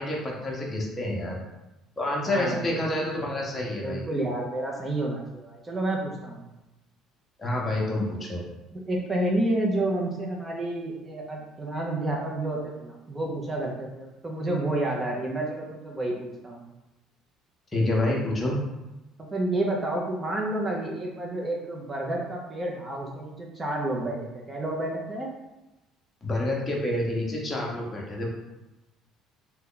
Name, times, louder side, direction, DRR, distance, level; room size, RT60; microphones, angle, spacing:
voice 1, 0.0-1.4 2.0-4.0 7.4-8.4 17.7-18.6 26.2-28.3, left 1 dB, 20° left, -3 dB, 0.8 m, -28 dB
voice 2, 2.2-2.7 3.8-6.4 8.7-16.6 19.3-24.2 24.5-25.3, right 1 dB, 20° right, -1 dB, 0.6 m, -30 dB
2.8 x 2.2 x 3.7 m, 1.0 s
supercardioid pair, 100°, 0 cm